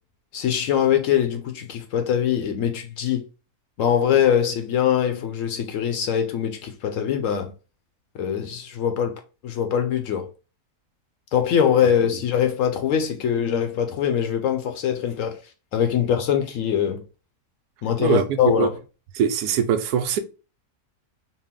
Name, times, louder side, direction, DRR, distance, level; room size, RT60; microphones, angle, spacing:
voice 1, 0.3-3.2 3.8-7.5 8.1-9.1 9.4-10.3 11.3-15.4 15.7-17.0 17.8-18.7, left 9 dB, 70° left, 0.8 m, -22 dB
voice 2, 18.0-18.7 19.1-20.2, right 8 dB, 85° right, 1.1 m, -22 dB
4.1 x 2.1 x 3.6 m
omnidirectional pair, 1.6 m